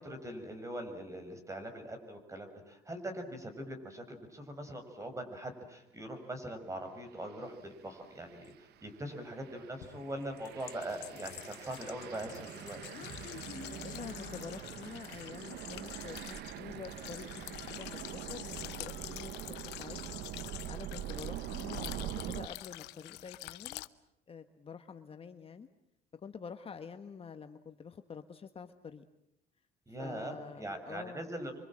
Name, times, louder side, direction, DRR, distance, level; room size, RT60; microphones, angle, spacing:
voice 1, 0.0-8.5 8.8-12.8 29.9-31.5, right 1 dB, 20° right, 7 dB, 6.4 m, -42 dB
sound 1, 7.2-7.5 8.0-22.5, right 12 dB, 75° right, 1.0 m, -44 dB
sound 2, 8.4-8.5 9.8-23.9, left 18 dB, 90° left, 1.0 m, -47 dB
Human voice, 12.4-15.4, left 8 dB, 50° left, 1.7 m, -50 dB
voice 2, 13.7-20.0 20.7-23.8 24.3-25.7 26.2-29.0 30.0-31.3, left 6 dB, 35° left, 8 dB, 1.4 m, -47 dB
28.0 x 24.5 x 7.6 m, 0.79 s
cardioid pair, 110°, 17 cm